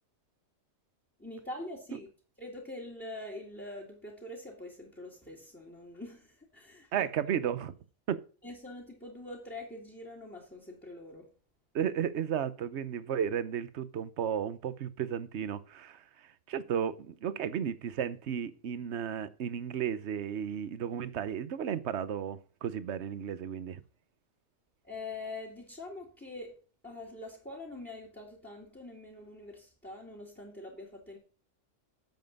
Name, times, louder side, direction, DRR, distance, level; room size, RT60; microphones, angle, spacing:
voice 1, 1.2-2.1 2.4-7.1 8.4-11.3 24.8-31.2, left 2 dB, 5° left, 2.3 m, -44 dB
voice 2, 6.9-7.7 8.1-8.2 11.7-23.8, right 8 dB, 60° right, 1.1 m, -34 dB
9.3 x 7.5 x 5.3 m
omnidirectional pair, 1.3 m